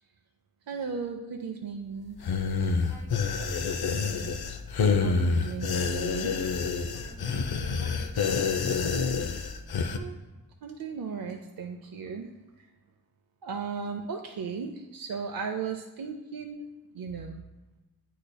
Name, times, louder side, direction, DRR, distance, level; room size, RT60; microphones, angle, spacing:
voice 1, 0.7-2.2 5.0-6.3 9.9-10.2 10.6-12.3 12.6-12.7 13.4-16.7 16.9-17.4, right 5 dB, 65° right, 4 dB, 0.6 m, -36 dB
sound 1, 2.2-10.0, left 5 dB, 80° left, 0.6 m, -28 dB
voice 2, 2.9-3.7 6.9-8.6, right 3 dB, 90° right, 0 dB, 1.4 m, -50 dB
8.4 x 5.1 x 2.2 m, 1.1 s
cardioid pair, 60°, 37 cm